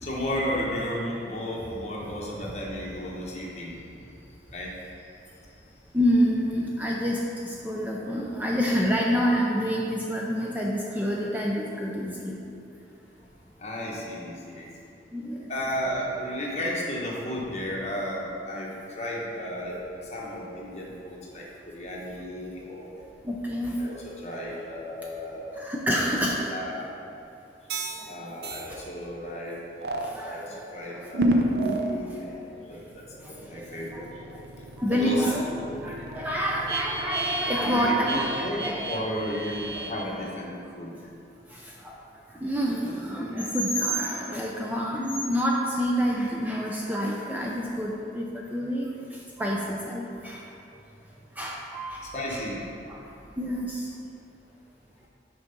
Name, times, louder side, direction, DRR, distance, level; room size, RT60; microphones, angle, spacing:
voice 1, 0.0-3.8 4.5-4.7 13.6-14.7 15.5-19.8 20.1-22.9 23.8-25.7 26.0-27.0 28.1-29.6 29.9-32.4 32.7-33.0 33.3-34.1 34.9-35.8 37.6-38.6 38.8-41.0 52.1-52.6, equal, 35° left, -4 dB, 1.2 m, -34 dB
voice 2, 5.9-12.4 15.1-15.5 23.2-23.8 25.6-26.5 28.0-28.1 28.7-28.8 30.0-30.6 30.9-31.1 32.5-32.8 33.2-34.1 34.8-35.4 35.8-38.9 41.5-42.0 42.4-48.9 49.4-50.4 51.4-52.4 52.9-53.1 53.4-53.9, equal, 10° right, -3 dB, 0.4 m, -28 dB
sound 1, 27.7-28.1 28.4-28.7 29.8-30.1 31.1-32.0 32.5-40.0, right 1 dB, 65° right, 0.6 m, -30 dB
6.3 x 4.7 x 5.2 m, 2.7 s
head